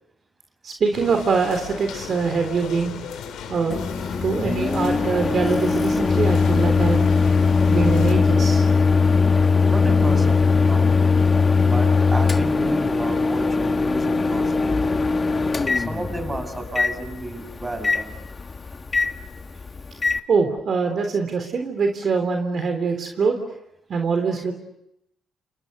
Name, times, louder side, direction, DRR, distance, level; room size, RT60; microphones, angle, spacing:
voice 1, 0.6-2.9 3.5-3.8 4.2-7.1 7.7-8.6 20.3-23.4 23.9-24.5, right 4 dB, 50° right, 5 dB, 3.5 m, -23 dB
sound 1, 0.9-8.1, left 7 dB, 85° left, 4.3 m, -36 dB
Microwave oven, 3.7-20.2, left 4 dB, 30° left, 1.6 m, -20 dB
voice 2, 9.7-11.0 11.6-15.0 15.7-18.2, right 1 dB, 20° right, 7 dB, 6.3 m, -32 dB
30.0 x 29.0 x 6.8 m, 0.83 s
cardioid pair, 90°, 0 cm